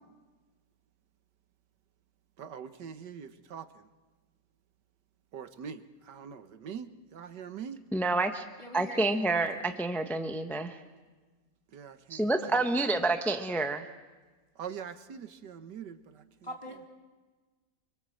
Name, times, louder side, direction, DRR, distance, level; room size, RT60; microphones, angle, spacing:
voice 1, 2.4-3.7 5.3-7.8 11.7-12.2 14.6-16.0, right 7 dB, 80° right, 11 dB, 1.8 m, -42 dB
voice 2, 7.9-8.4 8.7-10.8 12.1-13.8, right 2 dB, ahead, 6 dB, 1.0 m, -28 dB
voice 3, 8.6-9.8 12.4-12.7 16.4-16.9, equal, 15° left, 1 dB, 3.8 m, -44 dB
26.5 x 25.0 x 7.8 m, 1.3 s
omnidirectional pair, 1.8 m